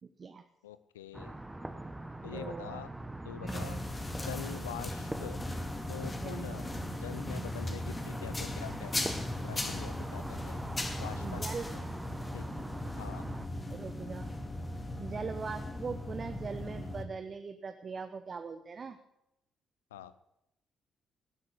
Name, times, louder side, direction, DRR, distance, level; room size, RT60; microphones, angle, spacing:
voice 1, 0.0-0.4 2.3-2.9 3.4-3.8 4.5-4.6 6.1-6.6 7.3-7.6 10.9-11.7 13.7-14.3 15.0-19.0, right 5 dB, 45° right, 9 dB, 1.0 m, -41 dB
voice 2, 0.6-1.3 2.2-2.9 3.2-3.8 4.2-5.4 5.9-6.7 7.0-9.2 9.4-10.6 11.0-11.5 12.3-12.5 13.0-13.2 19.9-20.1, left 12 dB, 85° left, 15 dB, 0.6 m, -45 dB
sound 1, 1.1-13.5, right 1 dB, 15° right, 1.2 m, -43 dB
sound 2, 3.5-17.0, left 1 dB, 25° left, 2.5 m, -38 dB
18.0 x 8.0 x 8.5 m, 0.85 s
figure-of-eight pair, 45°, 0 cm